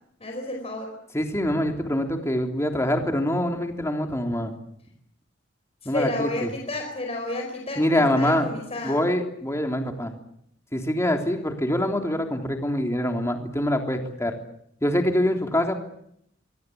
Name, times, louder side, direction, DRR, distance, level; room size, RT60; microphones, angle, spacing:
voice 1, 0.2-0.9 5.9-9.0, left 1 dB, 30° left, 2 dB, 4.7 m, -31 dB
voice 2, 1.1-4.5 5.9-6.5 7.8-8.5 8.8-10.1 10.7-14.3 14.8-15.7, left 1 dB, 15° left, 3 dB, 3.3 m, -24 dB
25.0 x 23.0 x 8.5 m, 0.74 s
head